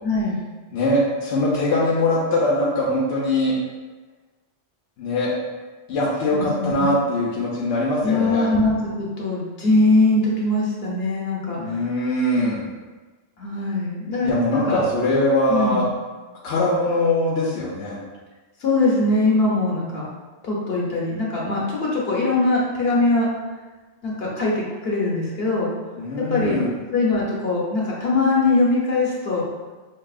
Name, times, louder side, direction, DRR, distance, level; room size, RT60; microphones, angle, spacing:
voice 1, 0.0-0.4 6.3-6.9 8.0-11.8 13.4-14.8 15.5-15.9 18.6-20.1 20.4-23.3 24.0-25.7 26.2-26.6 26.9-29.4, left 2 dB, 65° left, -5 dB, 1.1 m, -22 dB
voice 2, 0.7-3.6 5.0-5.3 5.9-8.5 11.6-12.6 14.2-15.8 16.4-18.0 26.0-26.7, left 1 dB, 85° left, -5 dB, 0.9 m, -22 dB
4.5 x 2.7 x 2.4 m, 1.3 s
omnidirectional pair, 1.1 m